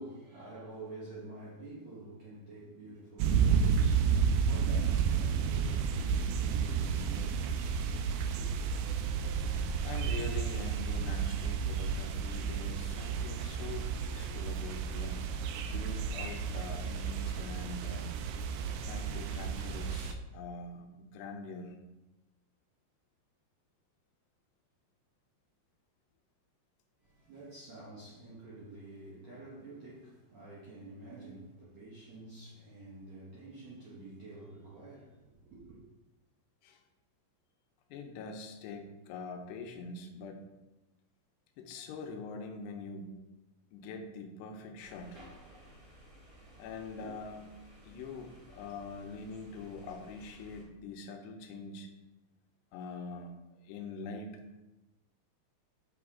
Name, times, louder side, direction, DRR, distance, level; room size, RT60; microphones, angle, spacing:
voice 1, 0.0-8.5 27.0-35.8, right 2 dB, 65° right, 1.7 m, -49 dB
sound 1, 3.2-20.1, right 6 dB, 85° right, 2.2 m, -31 dB
voice 2, 9.8-18.2 18.8-21.8 36.6-36.8 37.9-40.4 41.6-43.2 43.7-45.2 46.6-47.5 47.8-51.9 52.7-54.4, left 3 dB, 85° left, 2.8 m, -44 dB
sound 2, 44.8-50.6, equal, 30° right, 2.3 m, -55 dB
7.2 x 6.0 x 3.6 m
omnidirectional pair, 5.0 m